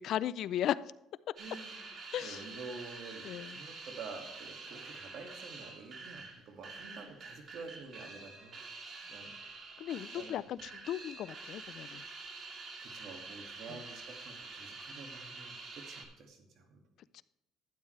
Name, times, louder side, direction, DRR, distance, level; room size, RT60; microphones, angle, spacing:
voice 1, 0.0-0.8 2.1-2.4 3.2-3.6 9.8-12.0 17.1-17.2, left 11 dB, 65° left, 18 dB, 0.3 m, -36 dB
sound 1, 1.4-16.0, right 3 dB, 45° right, 2.1 m, -47 dB
voice 2, 1.4-1.9 2.2-8.6 9.1-9.4 10.2-10.4 12.8-16.8, right 4 dB, 65° right, 3 dB, 2.1 m, -49 dB
12.5 x 8.7 x 3.2 m, 0.88 s
cardioid pair, 115°, 0 cm